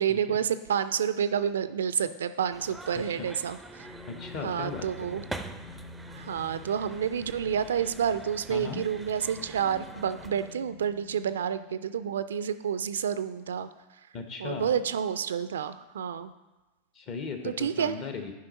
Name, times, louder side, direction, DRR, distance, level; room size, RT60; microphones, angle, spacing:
voice 1, 0.0-3.9 4.4-5.2 6.1-13.7 14.4-16.3 17.4-18.0, right 8 dB, 65° right, 13 dB, 0.3 m, -29 dB
sound 1, 2.5-10.5, right 2 dB, 5° right, 0.5 m, -45 dB
voice 2, 2.9-3.3 4.1-5.2 8.5-8.8 14.1-14.7 16.9-18.3, left 5 dB, 40° left, 6 dB, 1.1 m, -37 dB
sound 2, 3.7-12.2, left 2 dB, 90° left, 0.8 m, -49 dB
10.5 x 5.4 x 4.0 m, 1.1 s
figure-of-eight pair, 85°, 0 cm